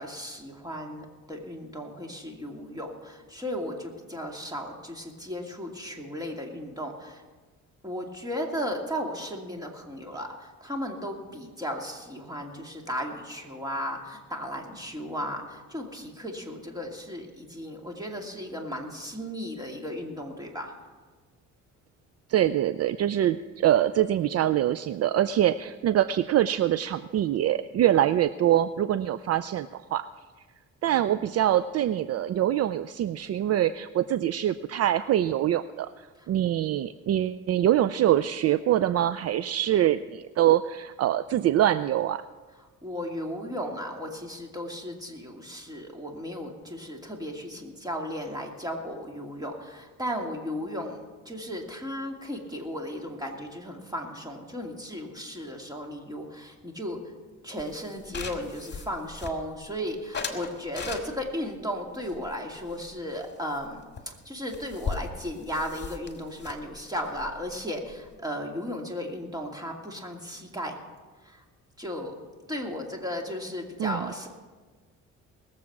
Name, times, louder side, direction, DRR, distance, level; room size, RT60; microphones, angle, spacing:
voice 1, 0.0-7.2 7.8-20.7 30.9-31.0 42.8-57.0 57.4-63.8 64.2-70.8 71.2-71.4 71.8-72.1 72.5-74.3, equal, 10° right, 1 dB, 2.5 m, -35 dB
voice 2, 22.3-30.1 30.8-42.2 73.8-74.1, right 12 dB, 55° right, 14 dB, 0.4 m, -24 dB
sound 1, 57.6-59.7 60.1-61.4 62.0-63.3 63.5-63.7 64.0-64.1 64.3-68.1, left 5 dB, 35° left, 1.9 m, -38 dB
20.0 x 7.4 x 6.0 m, 1.3 s
cardioid pair, 90°, 30 cm